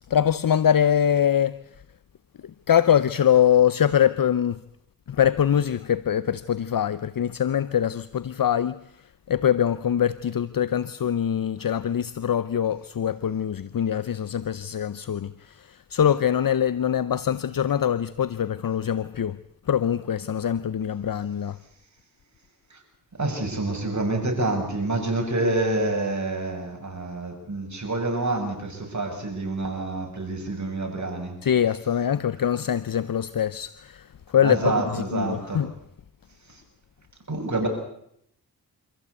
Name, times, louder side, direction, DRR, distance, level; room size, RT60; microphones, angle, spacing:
voice 1, 0.1-1.6 2.4-4.6 5.1-19.4 19.7-21.6 31.4-35.7, left 9 dB, 60° left, 0.7 m, -23 dB
voice 2, 23.2-31.4 34.4-35.6 37.3-37.7, right 2 dB, 45° right, 6.8 m, -27 dB
26.0 x 15.0 x 8.3 m
cardioid pair, 50°, 39 cm